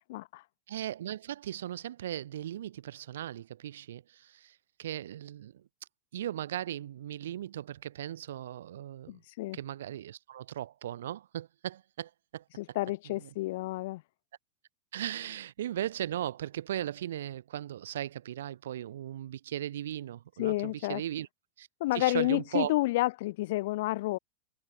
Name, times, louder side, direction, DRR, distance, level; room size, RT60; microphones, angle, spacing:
voice 1, 0.1-0.4 9.1-9.6 12.6-14.0 20.4-21.0 21.8-24.2, left 18 dB, 50° left, 0.3 m, -30 dB
voice 2, 0.7-5.6 6.1-9.1 9.5-12.8 13.2-13.3 14.9-21.3 21.6-21.7 21.9-22.7, right 11 dB, 60° right, 0.4 m, -37 dB
figure-of-eight pair, 90°, 0 cm